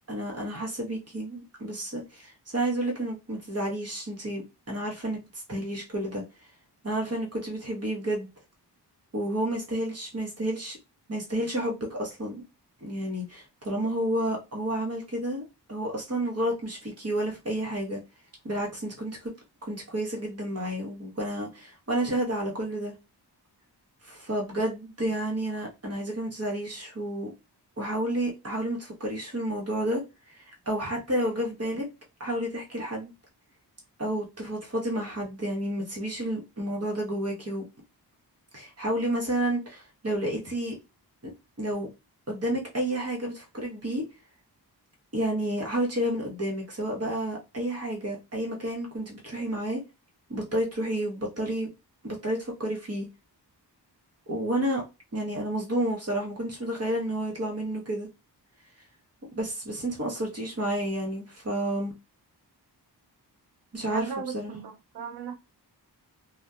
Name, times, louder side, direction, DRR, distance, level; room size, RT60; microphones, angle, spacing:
voice 1, 0.1-5.2 5.5-6.2 6.8-8.3 9.1-10.8 11.1-12.4 12.8-15.4 15.7-18.0 18.4-19.2 19.6-22.9 24.0-27.3 27.8-30.0 30.3-30.4 30.7-31.9 32.2-33.1 34.0-37.6 38.5-40.7 41.2-41.3 41.6-41.9 42.3-44.0 45.1-49.8 50.3-51.7 52.0-53.1 54.3-54.8 55.1-58.1 59.3-61.9 63.7-64.6, right 1 dB, 35° right, 1.1 m, -30 dB
voice 2, 63.9-65.4, right 5 dB, 65° right, 0.5 m, -37 dB
2.7 x 2.2 x 2.3 m
wide cardioid pair, 115°, 42 cm